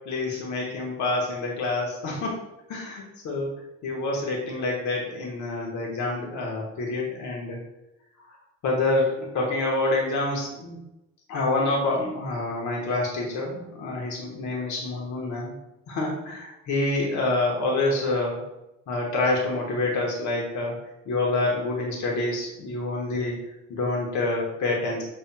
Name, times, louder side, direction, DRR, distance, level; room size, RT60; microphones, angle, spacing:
voice 1, 0.0-2.3 2.7-3.5 3.8-7.6 8.6-10.8 11.3-15.5 15.9-18.4 18.9-20.7 21.0-23.4 23.7-25.0, left 2 dB, 70° left, -2 dB, 1.3 m, -27 dB
5.6 x 3.4 x 2.2 m, 0.90 s
cardioid pair, 90°, 30 cm